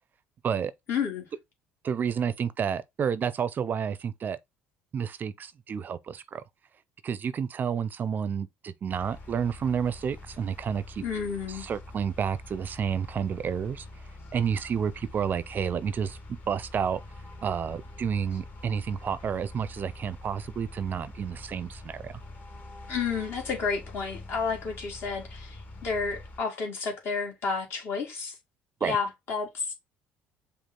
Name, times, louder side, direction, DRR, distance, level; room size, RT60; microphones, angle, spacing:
voice 1, 0.9-1.3 11.0-11.7 22.9-28.3 28.8-29.7, left 5 dB, 55° left, 1.8 m, -31 dB
voice 2, 1.8-4.4 4.9-6.4 7.0-11.0 11.5-13.9 14.3-16.2 16.5-17.0 17.4-22.2 28.8-29.0, right 7 dB, 40° right, 0.4 m, -30 dB
sound 1, 8.9-26.4, left 2 dB, 40° left, 1.4 m, -45 dB
5.1 x 2.4 x 3.7 m
supercardioid pair, 75°, 5 cm